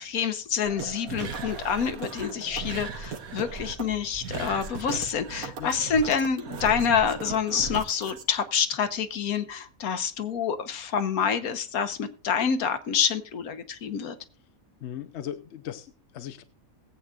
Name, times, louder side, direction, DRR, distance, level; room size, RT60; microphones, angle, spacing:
voice 1, 0.0-14.2, left 7 dB, 80° left, 1.4 m, -27 dB
sound 1, 0.6-8.2, right 5 dB, 75° right, 1.6 m, -37 dB
sound 2, 1.5-3.1 3.5-9.4 9.7-9.8, right 1 dB, 40° right, 4.6 m, -50 dB
voice 2, 14.8-16.4, left 10 dB, 60° left, 0.9 m, -38 dB
21.0 x 8.1 x 2.4 m
omnidirectional pair, 1.5 m